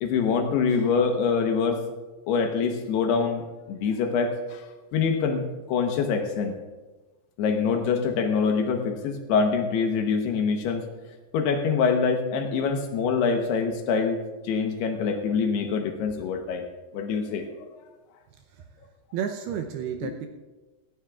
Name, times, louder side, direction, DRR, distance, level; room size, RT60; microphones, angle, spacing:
voice 1, 0.0-1.8 2.3-3.4 3.7-4.6 4.9-6.6 7.4-10.8 11.3-14.2 14.4-16.7 16.9-17.7 20.0-20.1, left 5 dB, 75° left, 4 dB, 2.9 m, -25 dB
voice 2, 19.1-20.3, right 8 dB, 75° right, 4 dB, 2.4 m, -31 dB
18.0 x 16.5 x 2.4 m, 1.2 s
omnidirectional pair, 5.1 m